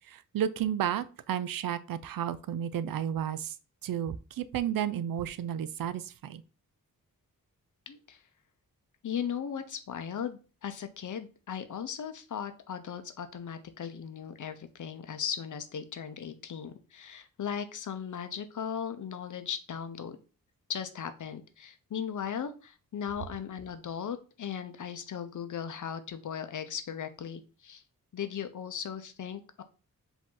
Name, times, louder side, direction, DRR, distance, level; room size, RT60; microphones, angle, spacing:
voice 1, 0.1-3.5 3.8-6.4, right 9 dB, 75° right, 0.5 m, -32 dB
voice 2, 7.9-8.2 9.0-20.2 20.7-27.8 28.1-29.6, left 8 dB, 60° left, 0.7 m, -37 dB
5.0 x 2.7 x 3.8 m
wide cardioid pair, 105°, 34 cm